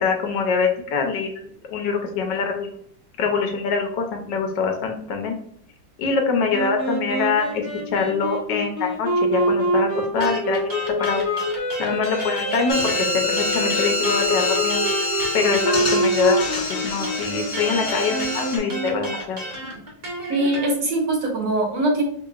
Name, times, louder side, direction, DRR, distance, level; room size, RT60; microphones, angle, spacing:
voice 1, 0.0-2.7 3.2-5.4 6.0-7.5 7.9-9.9 10.1-10.7 11.0-11.2 11.8-14.8 15.3-16.5 16.8-19.4, left 5 dB, 75° left, 3 dB, 1.3 m, -24 dB
sound 1, 6.5-19.1, right 1 dB, 10° right, 1.0 m, -26 dB
sound 2, 10.2-13.1 13.4-20.7, equal, 50° right, 0.5 m, -33 dB
sound 3, 12.7-18.6, left 2 dB, 45° left, 0.8 m, -26 dB
voice 2, 20.3-22.0, right 2 dB, 70° right, 0 dB, 1.6 m, -22 dB
4.3 x 2.8 x 2.3 m, 0.65 s
omnidirectional pair, 2.0 m